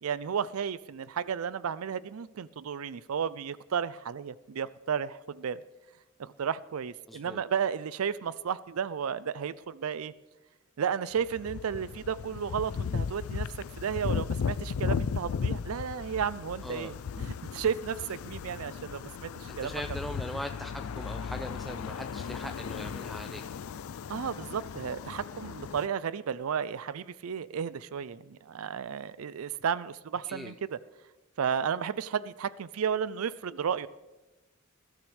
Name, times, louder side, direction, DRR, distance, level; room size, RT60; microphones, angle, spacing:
voice 1, 0.0-5.6 6.2-10.1 10.8-13.5 13.8-19.8 24.1-30.8 31.4-33.9, right 7 dB, 85° right, 18 dB, 0.4 m, -33 dB
voice 2, 7.1-7.4 16.6-16.9 19.5-23.4 30.3-30.5, equal, ahead, 5 dB, 0.4 m, -40 dB
sound 1, 11.2-25.9, left 6 dB, 80° left, 0.4 m, -36 dB
21.5 x 13.0 x 3.4 m, 1.1 s
head